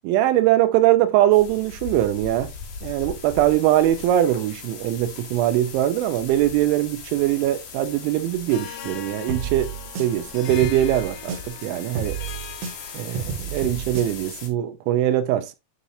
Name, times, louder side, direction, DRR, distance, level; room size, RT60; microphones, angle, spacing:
voice 1, 0.0-2.5 2.8-9.7 10.0-12.2 12.9-15.6, right 13 dB, 85° right, 3.0 m, -21 dB
sound 1, 1.3-14.5, left 6 dB, 65° left, 2.1 m, -39 dB
Harp, 8.5-13.5, left 10 dB, 85° left, 3.3 m, -40 dB
sound 2, 9.3-11.6 11.9-14.3, right 7 dB, 65° right, 3.3 m, -31 dB
9.8 x 3.9 x 2.5 m
omnidirectional pair, 5.4 m